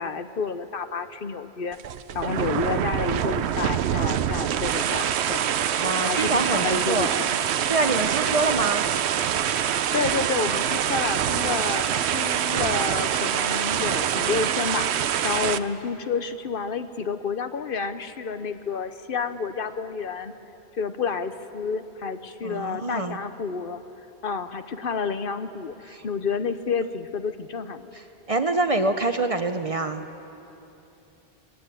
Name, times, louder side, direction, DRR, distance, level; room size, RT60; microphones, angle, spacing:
voice 1, 0.0-1.8 2.1-5.5 6.1-7.3 9.7-20.3 20.7-23.8 24.2-27.9, left 5 dB, 60° left, 10 dB, 0.9 m, -30 dB
sound 1, 1.7-15.6, right 9 dB, 80° right, 0.9 m, -25 dB
voice 2, 5.8-7.1 7.7-8.9 22.4-23.2 25.9-26.1 28.3-30.0, right 2 dB, 35° right, 7 dB, 0.7 m, -25 dB
21.0 x 16.5 x 9.0 m, 3.0 s
omnidirectional pair, 1.1 m